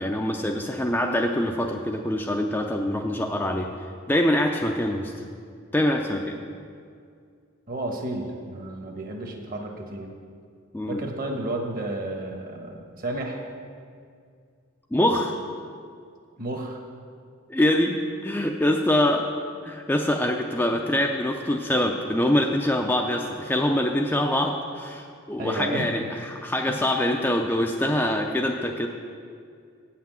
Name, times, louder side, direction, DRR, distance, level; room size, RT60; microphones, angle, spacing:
voice 1, 0.0-3.7 4.1-5.1 5.7-6.4 10.7-11.0 14.9-15.4 17.5-19.3 19.6-28.9, left 1 dB, 10° left, 2 dB, 0.4 m, -24 dB
voice 2, 7.7-10.1 10.9-13.4 16.4-16.8 25.4-25.9 26.7-26.8, right 1 dB, 40° right, 2 dB, 1.1 m, -32 dB
8.3 x 5.8 x 7.4 m, 2.3 s
head